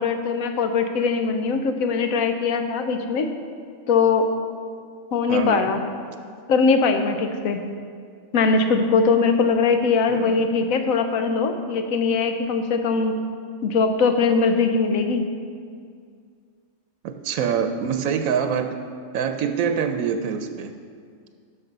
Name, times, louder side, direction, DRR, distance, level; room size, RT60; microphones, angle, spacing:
voice 1, 0.0-3.3 3.9-4.3 5.1-5.8 6.5-7.6 8.3-13.2 13.6-15.2, left 4 dB, 85° left, 6 dB, 1.2 m, -21 dB
voice 2, 5.3-5.7 10.1-10.4 17.0-18.8 19.1-20.7, right 7 dB, 85° right, 7 dB, 1.0 m, -25 dB
12.0 x 6.2 x 5.3 m, 2.2 s
omnidirectional pair, 1.4 m